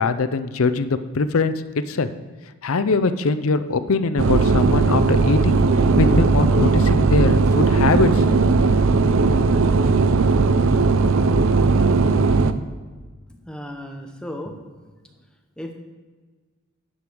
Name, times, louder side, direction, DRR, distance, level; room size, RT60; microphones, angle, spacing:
voice 1, 0.0-1.5 1.9-2.1 2.6-5.6 6.0-8.4, left 4 dB, 75° left, 11 dB, 0.6 m, -22 dB
sound 1, 4.2-12.5, right 4 dB, 65° right, 0.5 m, -17 dB
voice 2, 13.5-14.5 15.6-15.7, left 1 dB, 5° left, 3 dB, 0.9 m, -34 dB
10.0 x 5.1 x 6.3 m, 1.4 s
head